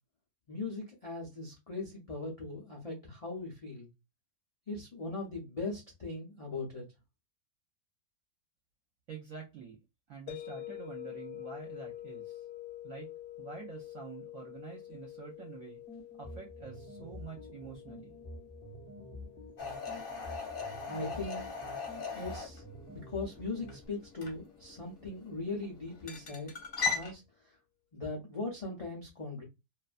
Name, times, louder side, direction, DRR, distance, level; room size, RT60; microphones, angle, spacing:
voice 1, 0.5-3.9 4.7-6.8 20.9-21.4 22.1-22.6 22.9-26.5 26.9-27.2 27.9-29.4, left 3 dB, 70° left, 0.3 m, -39 dB
voice 2, 9.1-9.8 10.1-12.4 12.8-13.1 13.4-15.8 16.2-18.1, right 6 dB, 65° right, 1.0 m, -47 dB
sound 1, 10.3-25.2, left 14 dB, 90° left, 1.1 m, -49 dB
sound 2, 15.9-23.9, equal, 15° left, 0.6 m, -49 dB
sound 3, 19.6-27.1, left 5 dB, 45° left, 0.7 m, -39 dB
2.6 x 2.3 x 2.4 m
omnidirectional pair, 1.7 m